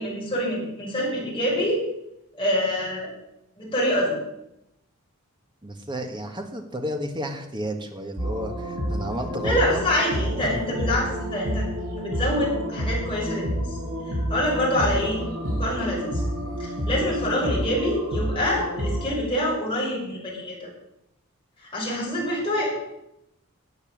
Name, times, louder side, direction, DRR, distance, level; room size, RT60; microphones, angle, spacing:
voice 1, 0.0-1.8 2.3-3.1 3.6-4.2 9.4-11.6 12.0-13.5 14.1-15.2 15.5-16.2 16.6-20.7 21.7-22.7, left 1 dB, 25° left, -5 dB, 6.5 m, -26 dB
voice 2, 5.6-9.8 10.4-10.8, equal, 20° right, 4 dB, 1.5 m, -32 dB
sound 1, 8.2-19.1, equal, 70° right, 5.9 m, -29 dB
12.5 x 8.1 x 7.7 m, 0.85 s
head